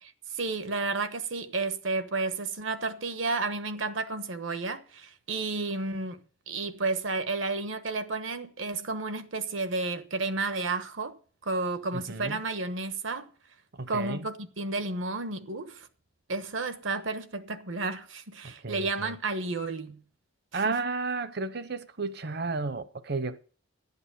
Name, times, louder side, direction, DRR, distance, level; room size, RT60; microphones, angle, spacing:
voice 1, 0.0-6.2 6.5-11.2 11.4-13.3 13.9-15.9 16.3-20.0 20.5-20.8, right 3 dB, 80° right, 1.2 m, -32 dB
voice 2, 11.9-12.4 13.7-14.3 18.4-19.1 20.5-23.4, right 3 dB, 55° right, 0.8 m, -33 dB
12.0 x 8.1 x 6.9 m
head